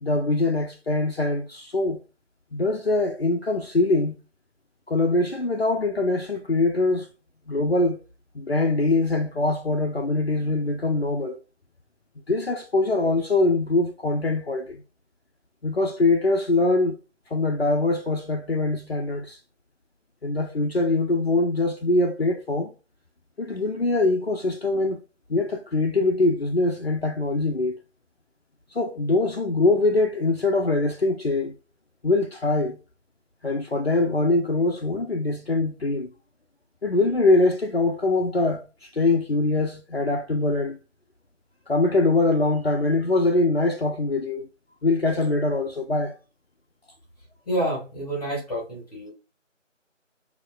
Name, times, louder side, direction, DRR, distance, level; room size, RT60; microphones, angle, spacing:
voice 1, 0.0-2.0 2.5-4.2 4.9-7.1 7.5-8.0 8.3-11.4 12.3-14.8 15.6-17.0 17.3-19.4 20.2-22.7 23.4-25.0 25.3-27.8 28.7-31.5 32.0-32.8 33.4-36.1 36.8-40.8 41.7-44.5 44.8-46.2, left 2 dB, 55° left, 0.6 m, -23 dB
voice 2, 47.4-49.1, right 1 dB, 5° left, 1.6 m, -28 dB
6.3 x 2.9 x 2.3 m
figure-of-eight pair, 170°, 38 cm